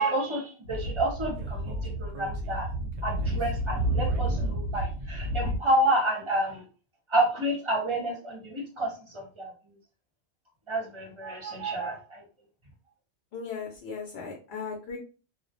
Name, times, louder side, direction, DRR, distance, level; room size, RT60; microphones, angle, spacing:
voice 1, 0.0-2.7 3.0-6.6 7.1-9.5 10.7-12.2, right 1 dB, 30° right, -1 dB, 0.7 m, -29 dB
Speech / Wind, 0.6-5.6, right 1 dB, 85° right, 0.9 m, -30 dB
voice 2, 13.3-15.0, left 5 dB, 70° left, 0 dB, 0.8 m, -37 dB
2.3 x 2.0 x 2.6 m, 0.35 s
omnidirectional pair, 1.1 m